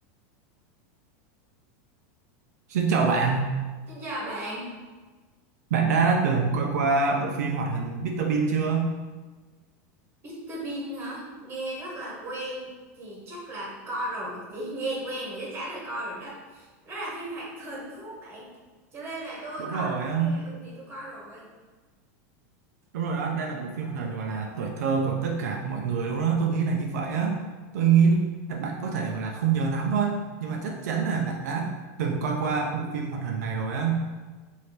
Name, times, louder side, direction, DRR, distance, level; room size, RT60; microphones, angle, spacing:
voice 1, 2.7-3.5 5.7-8.9 19.6-20.4 22.9-27.4 27.7-28.2 28.5-31.7 32.0-34.0, right 5 dB, 85° right, 1 dB, 0.5 m, -25 dB
voice 2, 3.9-4.6 10.2-12.7 13.0-18.5 18.9-21.5, right 1 dB, 25° right, -4 dB, 1.3 m, -36 dB
3.3 x 2.7 x 4.3 m, 1.3 s
supercardioid pair, 150°, 9 cm